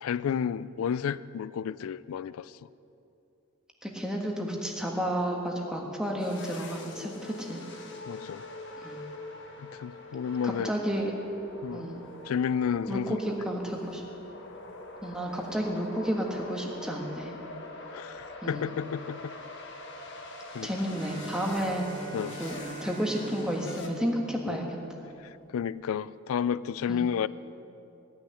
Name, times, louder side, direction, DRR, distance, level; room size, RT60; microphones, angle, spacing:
voice 1, 0.0-2.6 8.1-8.5 9.6-10.7 11.6-11.9 12.2-13.2 17.9-19.3 20.5-20.7 22.1-22.4 24.5-24.6 25.2-27.3, left 7 dB, 75° left, 18 dB, 0.3 m, -31 dB
voice 2, 3.8-7.6 8.8-9.0 10.4-11.1 11.7-12.0 12.9-14.0 15.0-17.3 18.4-18.7 20.6-21.9 22.4-24.7 26.9-27.1, equal, 5° right, 0 dB, 1.5 m, -31 dB
sound 1, 6.2-23.9, left 2 dB, 55° left, 1.5 m, -44 dB
Bowed string instrument, 20.9-25.2, right 3 dB, 40° right, 2.0 m, -44 dB
17.0 x 6.6 x 9.9 m, 2.8 s
head